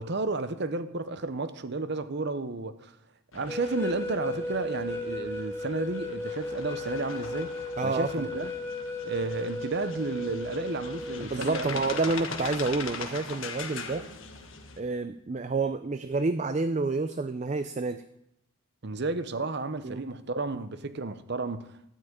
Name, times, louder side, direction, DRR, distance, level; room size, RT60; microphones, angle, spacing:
voice 1, 0.0-2.9 3.3-8.5 9.0-11.8 18.8-21.8, right 3 dB, 50° right, 0.8 m, -32 dB
sound 1, 3.3-14.8, left 5 dB, 65° left, 1.4 m, -41 dB
sound 2, 3.5-11.3, left 2 dB, 10° left, 0.8 m, -35 dB
voice 2, 7.8-8.3 11.2-14.1 14.8-18.0 19.8-20.1, right 3 dB, 30° right, 0.4 m, -29 dB
13.0 x 5.7 x 8.7 m
head